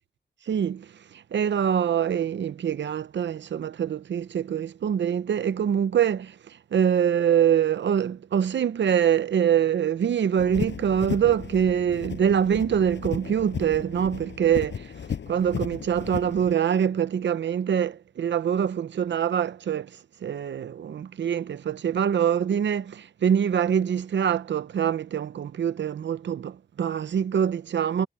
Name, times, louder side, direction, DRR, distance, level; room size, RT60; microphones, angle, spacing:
voice 1, 0.5-14.9 15.3-28.1, right 8 dB, 70° right, 0.7 m, -24 dB
sound 1, 10.4-16.5, left 7 dB, 75° left, 5.6 m, -35 dB
wide cardioid pair, 175°, 19 cm